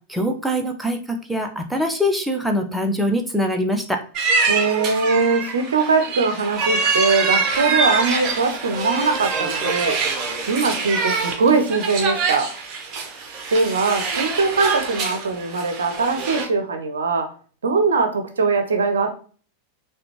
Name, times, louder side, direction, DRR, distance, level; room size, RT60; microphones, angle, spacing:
voice 1, 0.1-4.0, equal, ahead, 3 dB, 0.5 m, -23 dB
sound 1, 4.1-16.4, right 4 dB, 35° right, 0.8 m, -25 dB
voice 2, 4.5-10.0 10.5-12.5 13.5-17.3 17.6-19.1, right 4 dB, 70° right, 6 dB, 0.6 m, -21 dB
4.9 x 2.3 x 2.9 m, 0.41 s
figure-of-eight pair, 90°, 0 cm